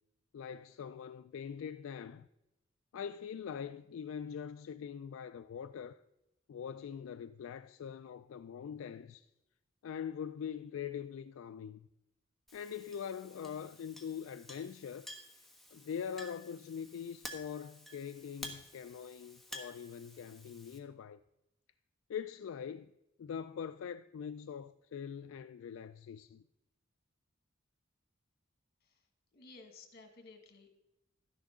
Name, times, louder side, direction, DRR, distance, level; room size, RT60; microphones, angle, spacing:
voice 1, 0.3-2.3 2.9-6.0 6.5-9.3 9.8-11.9 12.5-15.1 15.7-21.2 22.1-22.9 23.2-26.4, left 7 dB, 75° left, 0.3 m, -43 dB
Chink clink, 12.5-20.8, left 1 dB, ahead, 1.2 m, -51 dB
voice 2, 29.3-30.8, left 3 dB, 50° left, 1.8 m, -56 dB
12.0 x 10.5 x 3.6 m
head